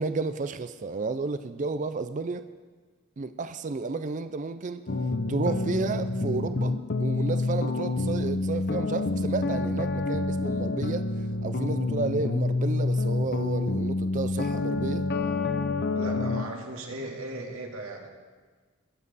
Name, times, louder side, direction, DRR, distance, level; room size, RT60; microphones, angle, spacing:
voice 1, 0.0-2.4 3.2-4.8 5.3-6.7 7.0-11.1 11.4-15.1, right 3 dB, 35° right, 0.4 m, -32 dB
sound 1, 4.9-16.4, left 3 dB, 50° left, 0.6 m, -28 dB
voice 2, 15.9-18.1, right 1 dB, 90° right, 2.1 m, -37 dB
21.5 x 7.4 x 4.1 m
head